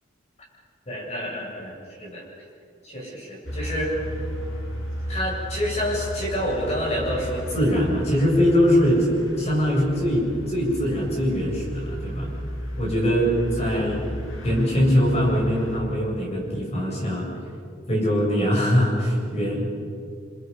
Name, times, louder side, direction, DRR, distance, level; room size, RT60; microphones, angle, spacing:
voice 1, 0.9-1.7 2.0-2.2 2.8-3.9 5.1-9.1 9.4-12.3 12.8-14.0 14.4-17.3 17.9-19.6, equal, 35° left, -2 dB, 7.7 m, -23 dB
sound 1, 3.4-15.8, equal, 85° left, 6.4 m, -34 dB
29.5 x 26.0 x 5.8 m, 2.4 s
head